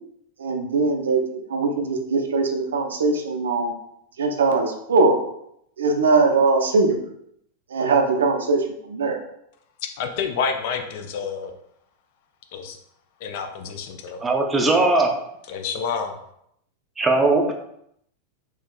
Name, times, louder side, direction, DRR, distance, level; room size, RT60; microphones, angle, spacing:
voice 1, 0.4-1.2 1.5-3.7 4.2-5.2 5.8-7.0 7.7-9.2, right 3 dB, 65° right, 4 dB, 0.4 m, -21 dB
voice 2, 9.8-11.5 12.5-12.8 13.2-14.3 15.5-16.2, left 6 dB, 50° left, 6 dB, 0.4 m, -28 dB
voice 3, 14.2-15.1 17.0-17.5, right 2 dB, 15° right, 2 dB, 0.5 m, -19 dB
3.4 x 3.0 x 2.2 m, 0.74 s
figure-of-eight pair, 90°, 0 cm